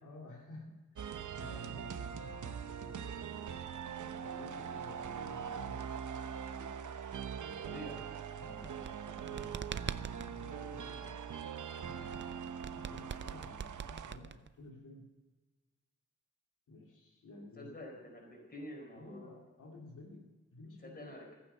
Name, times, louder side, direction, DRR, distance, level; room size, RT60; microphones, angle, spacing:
voice 1, 0.0-3.4 3.9-6.1 7.3-8.0 8.4-11.2 11.7-12.3 12.6-15.1 16.7-17.8 18.9-21.1, left 2 dB, 85° left, -1 dB, 2.6 m, -53 dB
sound 1, 1.0-14.1, right 7 dB, 75° right, 0.9 m, -42 dB
voice 2, 7.6-8.1 17.6-19.3 20.8-21.3, left 1 dB, 30° left, 0 dB, 5.0 m, -48 dB
sound 2, 8.5-10.3 12.1-14.7, right 7 dB, 40° right, 0.5 m, -42 dB
15.0 x 14.5 x 5.5 m, 1.2 s
wide cardioid pair, 170°, 30 cm